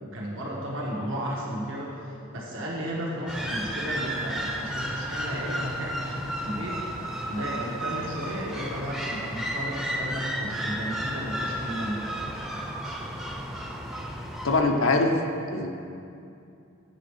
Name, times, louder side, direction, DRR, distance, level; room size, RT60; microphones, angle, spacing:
voice 1, 0.0-6.8 7.3-12.0, equal, 80° right, -4 dB, 1.4 m, -34 dB
sound 1, 3.3-14.6, equal, 5° right, 0.5 m, -33 dB
voice 2, 14.4-15.1 15.5-15.7, left 3 dB, 90° left, 3 dB, 0.8 m, -22 dB
9.0 x 5.6 x 4.8 m, 2.6 s
head